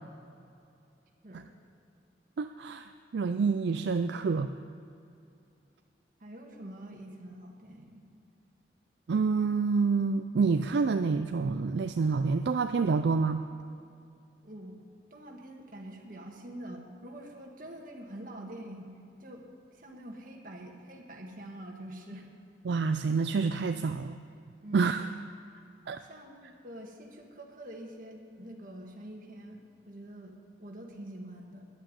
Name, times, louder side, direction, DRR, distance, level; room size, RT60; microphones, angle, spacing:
voice 1, 2.4-4.5 9.1-13.4 22.6-24.2 24.7-25.1 25.9-26.0, right 4 dB, 70° right, 8 dB, 0.4 m, -27 dB
voice 2, 6.2-8.0 14.4-14.8 15.1-18.9 19.2-19.5 19.7-22.3 24.6-25.0 26.0-31.7, right 1 dB, 45° right, 1 dB, 1.7 m, -45 dB
10.5 x 8.8 x 9.8 m, 2.6 s
head